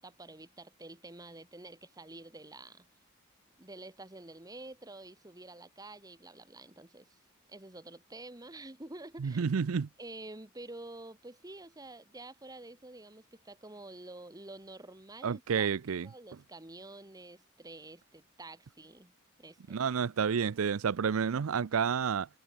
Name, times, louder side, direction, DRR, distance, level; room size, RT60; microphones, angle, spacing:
voice 1, 0.0-2.9 3.6-7.2 7.5-9.4 10.0-15.7 16.0-19.1 19.4-19.8, right 2 dB, 20° right, 1.9 m, -49 dB
voice 2, 9.2-9.9 15.2-16.1 19.7-22.3, right 6 dB, 75° right, 0.5 m, -30 dB
head